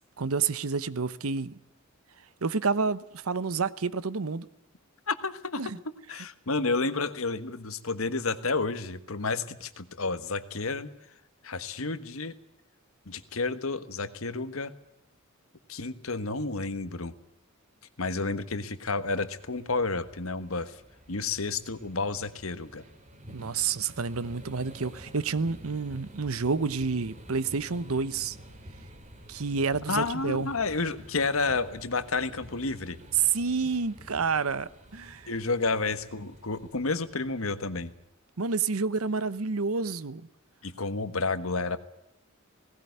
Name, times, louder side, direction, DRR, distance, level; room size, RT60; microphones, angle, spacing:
voice 1, 0.2-1.6 2.4-4.5 5.6-5.8 23.3-28.4 29.3-30.5 33.2-35.3 38.4-40.3, right 5 dB, 90° right, 0.9 m, -29 dB
voice 2, 5.1-5.6 6.1-10.9 11.4-12.4 13.1-14.7 15.7-17.1 18.0-20.8 21.1-22.8 29.9-33.0 35.3-37.9 40.6-41.8, left 3 dB, 75° left, 1.4 m, -30 dB
sound 1, 19.0-38.1, equal, 35° right, 3.0 m, -50 dB
18.5 x 16.5 x 9.4 m
head